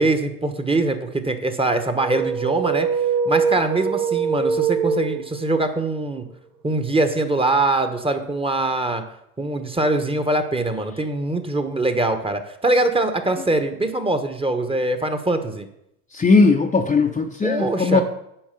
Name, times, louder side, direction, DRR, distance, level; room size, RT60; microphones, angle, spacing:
voice 1, 0.0-2.9 3.2-6.2 6.6-9.0 9.4-15.7 17.4-18.0, right 2 dB, 10° right, 8 dB, 1.1 m, -22 dB
sound 1, 2.0-5.6, right 6 dB, 80° right, 1.4 m, -23 dB
voice 2, 16.1-18.0, left 4 dB, 15° left, 2 dB, 0.8 m, -18 dB
8.8 x 5.3 x 6.8 m, 0.80 s
hypercardioid pair, 80°, 47 cm